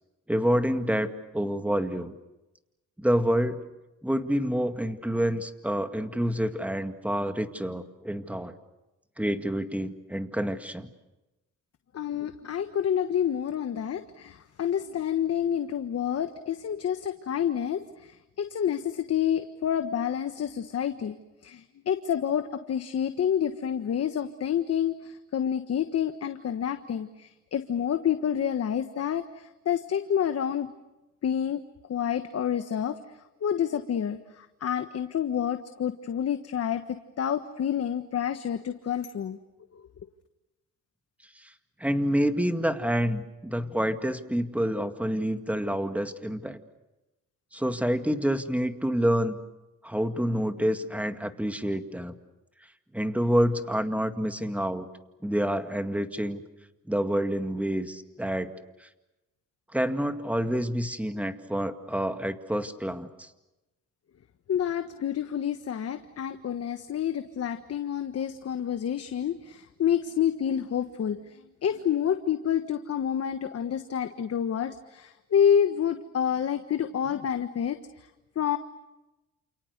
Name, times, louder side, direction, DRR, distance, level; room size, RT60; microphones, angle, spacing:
voice 1, 0.3-2.1 3.0-3.6 4.0-8.5 9.2-10.9 41.4-41.5 41.8-46.6 47.5-49.4 49.8-52.1 52.9-54.9 55.2-56.4 56.9-58.5 58.8-58.9 59.7-63.3, equal, 5° right, 8 dB, 2.1 m, -28 dB
voice 2, 11.9-21.2 21.4-30.7 31.2-31.6 31.9-33.0 33.4-39.4 39.7-39.9 64.5-78.1 78.3-78.6, left 9 dB, 55° left, 8 dB, 1.4 m, -28 dB
29.0 x 28.5 x 6.7 m, 1.0 s
cardioid pair, 90°, 30 cm